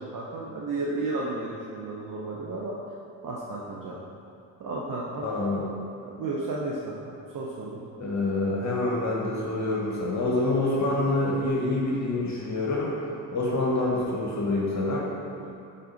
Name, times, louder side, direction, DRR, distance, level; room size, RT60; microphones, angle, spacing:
voice 1, 0.0-2.8 3.2-3.9 4.6-5.3 6.1-7.8, right 2 dB, 45° right, -4 dB, 1.0 m, -33 dB
voice 2, 5.2-5.7 8.0-12.9 13.3-15.1, left 2 dB, 40° left, -3 dB, 1.4 m, -26 dB
8.6 x 4.2 x 4.0 m, 2.6 s
supercardioid pair, 70°, 43 cm